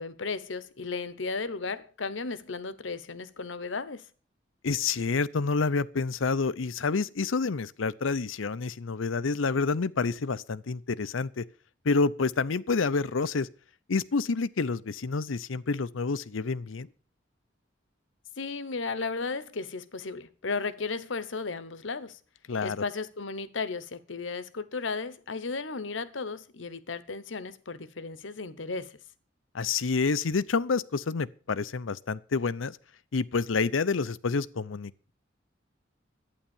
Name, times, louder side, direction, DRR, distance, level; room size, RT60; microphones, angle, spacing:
voice 1, 0.0-4.1 18.4-22.2 22.6-29.0, left 4 dB, 70° left, 1.0 m, -35 dB
voice 2, 4.6-11.4 11.8-13.5 13.9-16.9 22.5-22.8 29.5-32.8 33.1-34.9, left 4 dB, 90° left, 0.6 m, -28 dB
11.5 x 9.4 x 7.1 m
head